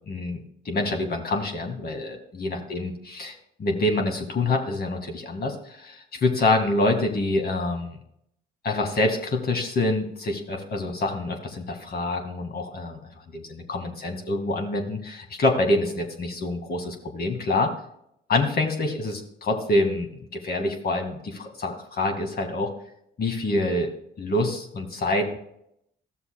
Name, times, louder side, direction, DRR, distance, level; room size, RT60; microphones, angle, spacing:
voice 1, 0.1-0.4 0.7-8.0 8.6-13.0 13.3-17.7 18.3-22.7 23.2-23.9 24.2-25.4, left 2 dB, 50° left, 4 dB, 2.0 m, -26 dB
15.0 x 6.9 x 2.3 m, 0.74 s
cardioid pair, 90°, 20 cm